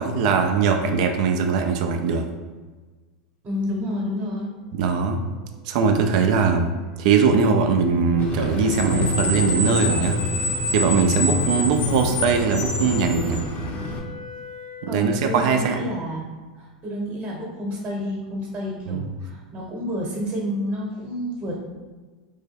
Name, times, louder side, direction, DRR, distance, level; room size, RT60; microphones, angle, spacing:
voice 1, 0.0-2.3 4.8-5.2 5.7-6.7 7.0-10.2 10.4-13.4 14.9-15.8 18.9-19.0, right 5 dB, 60° right, 5 dB, 0.4 m, -21 dB
voice 2, 3.4-4.5 14.9-16.3 16.6-21.6, equal, 30° right, -2 dB, 0.9 m, -29 dB
sound 1, 5.1-15.1, left 7 dB, 70° left, 0.9 m, -45 dB
Screech, 8.2-14.0, left 1 dB, 40° left, 0.6 m, -25 dB
3.4 x 2.1 x 3.3 m, 1.3 s
hypercardioid pair, 95°, 4 cm